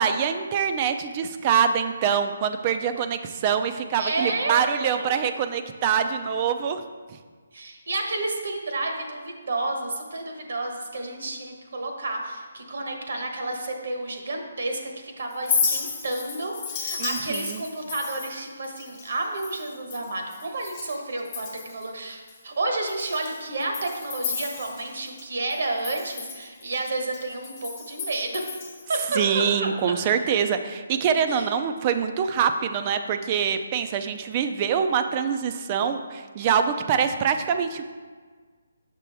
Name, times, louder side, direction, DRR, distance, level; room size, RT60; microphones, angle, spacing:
voice 1, 0.0-6.8 17.0-17.6 29.1-37.8, right 7 dB, 30° right, 8 dB, 0.4 m, -24 dB
voice 2, 4.0-5.2 7.5-28.4 28.9-29.9 31.3-31.5, right 2 dB, 65° right, 3 dB, 1.0 m, -31 dB
Chink clink, 15.3-21.0 21.2-21.9 22.3-22.4 22.9-25.2 25.5-29.0, left 6 dB, 25° left, 1.0 m, -33 dB
6.0 x 5.9 x 3.4 m, 1.5 s
hypercardioid pair, 155°, 0 cm